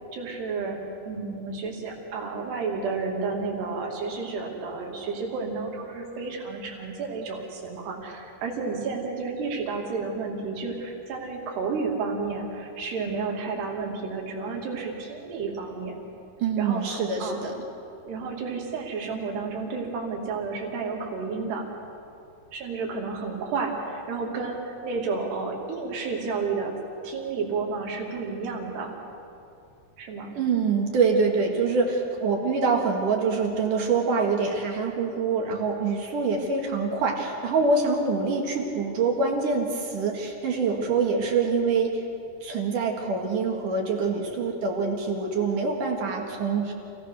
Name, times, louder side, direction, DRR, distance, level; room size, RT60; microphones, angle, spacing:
voice 1, 0.1-0.8 1.0-16.0 16.6-17.4 18.0-21.7 22.5-26.7 27.0-28.9 30.0-30.3, right 4 dB, 80° right, 0 dB, 4.8 m, -31 dB
voice 2, 16.4-17.5 30.3-42.0 42.4-46.7, right 4 dB, 60° right, 1 dB, 3.0 m, -25 dB
28.0 x 17.0 x 6.4 m, 2.6 s
omnidirectional pair, 4.7 m